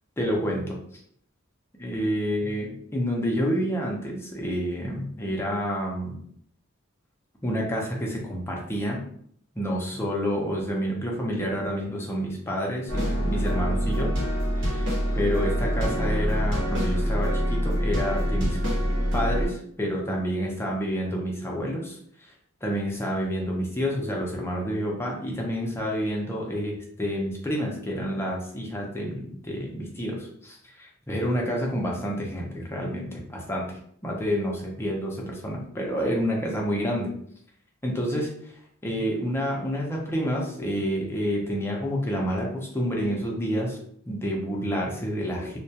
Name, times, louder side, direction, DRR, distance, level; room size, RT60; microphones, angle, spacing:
voice 1, 0.2-0.8 1.8-6.2 7.4-9.0 9.6-14.1 14.6-18.6 19.1-22.0 22.6-33.6 34.0-37.1 37.8-38.3 38.8-43.8 44.1-45.6, equal, 10° left, -2 dB, 0.5 m, -29 dB
sound 1, 12.9-19.5, equal, 65° right, 1.0 m, -25 dB
2.2 x 2.1 x 2.7 m, 0.65 s
head